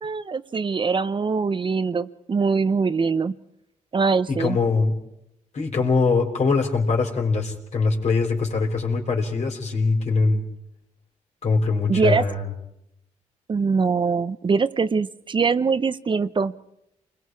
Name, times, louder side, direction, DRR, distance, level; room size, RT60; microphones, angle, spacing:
voice 1, 0.0-3.3 3.9-4.6 11.9-12.2 13.5-16.5, right 5 dB, 40° right, 13 dB, 0.7 m, -23 dB
voice 2, 4.3-4.9 5.5-10.4 11.4-12.5, left 4 dB, 60° left, 2 dB, 4.1 m, -22 dB
29.0 x 21.0 x 4.8 m, 0.80 s
cardioid pair, 85°, 13 cm